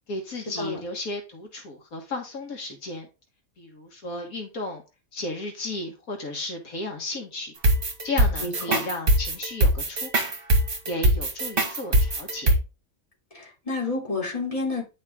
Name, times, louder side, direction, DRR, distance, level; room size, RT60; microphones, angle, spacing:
voice 1, 0.1-3.1 3.6-4.8 5.1-7.5 8.0-10.3 10.9-12.6, left 2 dB, 75° left, 1.9 m, -34 dB
sound 1, 7.6-12.6, right 1 dB, 40° right, 1.7 m, -21 dB
voice 2, 8.4-8.8 13.3-14.8, left 3 dB, 25° left, 3.3 m, -29 dB
9.9 x 5.4 x 3.6 m
omnidirectional pair, 1.5 m